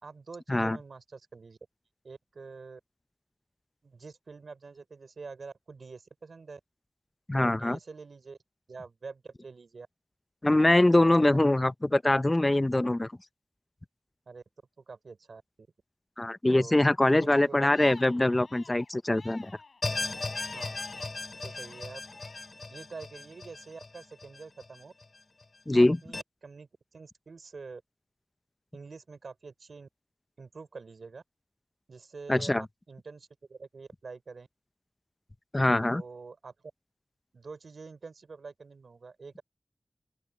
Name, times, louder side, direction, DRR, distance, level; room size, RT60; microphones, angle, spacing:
voice 1, 0.0-1.6 2.0-2.8 3.8-6.6 7.3-8.4 8.7-9.9 11.2-11.5 14.3-14.4 14.9-15.4 16.5-16.8 17.1-17.6 20.5-20.9 21.4-22.0 22.7-24.9 25.7-27.8 28.7-29.9 30.4-31.2 31.9-34.5 35.9-36.5 37.3-39.4, right 4 dB, 90° right, 5.3 m, -46 dB
voice 2, 7.3-7.8 10.4-13.1 16.2-19.5 25.7-26.0 32.3-32.6 35.5-36.0, left 1 dB, 30° left, 0.6 m, -23 dB
Crying sobbing, 17.2-21.1 21.5-22.5, left 4 dB, 80° left, 5.9 m, -49 dB
sound 1, 19.8-25.0 25.4-25.5 26.1-26.2, left 3 dB, 60° left, 3.6 m, -37 dB
open air
cardioid pair, 45°, 0 cm